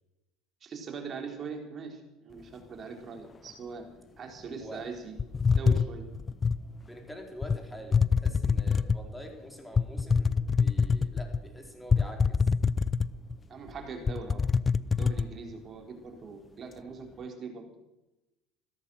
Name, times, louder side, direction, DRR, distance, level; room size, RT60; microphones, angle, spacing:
voice 1, 0.6-3.9 4.2-5.2 5.6-6.1 13.5-14.4 14.8-17.7, right 5 dB, 40° right, 3 dB, 4.0 m, -41 dB
sound 1, 5.2-6.6 7.4-7.6 7.9-9.1 9.8-11.4 11.9-13.3 13.7-13.8 14.1-15.3, left 5 dB, 30° left, 0.5 m, -25 dB
voice 2, 6.8-12.5 14.1-14.2, equal, 5° left, 2 dB, 4.4 m, -46 dB
15.5 x 13.5 x 6.3 m, 0.98 s
hypercardioid pair, 80°, 0 cm